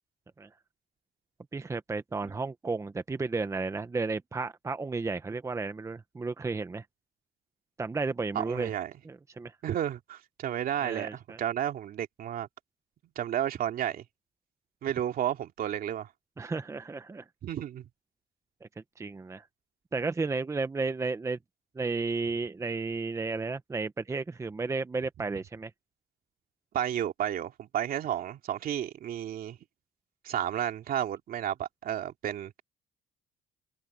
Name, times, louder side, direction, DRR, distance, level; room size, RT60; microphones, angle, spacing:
voice 1, 1.5-6.8 7.8-8.7 9.0-9.6 10.8-11.4 16.4-17.3 18.6-19.5 19.9-21.4 21.7-25.7, right 3 dB, 15° right, 0.9 m, -33 dB
voice 2, 8.3-8.9 9.6-12.5 13.2-14.0 14.8-16.1 17.4-17.8 26.7-29.6 30.2-32.6, right 10 dB, 60° right, 2.6 m, -32 dB
cardioid pair, 110°, 17 cm